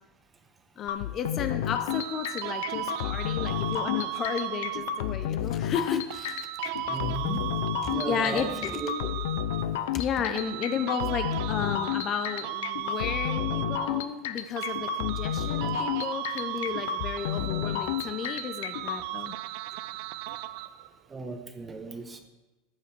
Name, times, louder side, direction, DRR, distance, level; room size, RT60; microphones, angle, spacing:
voice 1, 0.8-6.5 7.8-8.8 9.9-19.4, left 7 dB, 35° left, 9 dB, 0.7 m, -33 dB
sound 1, 0.9-19.0, left 11 dB, 80° left, 0.6 m, -31 dB
sound 2, 1.9-5.3 6.1-9.9 10.3-14.3 14.6-20.9, right 15 dB, 65° right, 0.5 m, -36 dB
voice 2, 6.9-7.5 7.9-8.9 17.3-17.6 21.1-22.2, right 3 dB, 20° right, 6 dB, 1.3 m, -36 dB
14.0 x 7.0 x 4.5 m, 1.1 s
supercardioid pair, 130°, 0 cm